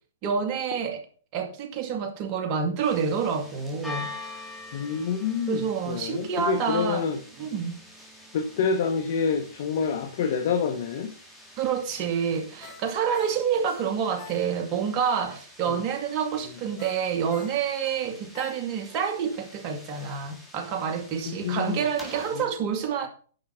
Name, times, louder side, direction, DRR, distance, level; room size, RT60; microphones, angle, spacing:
voice 1, 0.2-1.0 1.3-4.1 5.5-7.1 7.4-7.8 11.6-23.1, right 7 dB, 40° right, 2.3 m, -28 dB
sound 1, 2.8-22.4, left 2 dB, 5° left, 3.2 m, -46 dB
voice 2, 4.7-7.2 8.3-11.1 15.7-15.8 21.2-21.8 22.3-22.4, left 6 dB, 55° left, 1.4 m, -27 dB
Ringtone, 12.6-14.9 15.2-15.3 16.8-19.0 19.4-19.5, left 9 dB, 40° left, 2.2 m, -47 dB
10.5 x 5.9 x 5.9 m
hypercardioid pair, 125°, 0 cm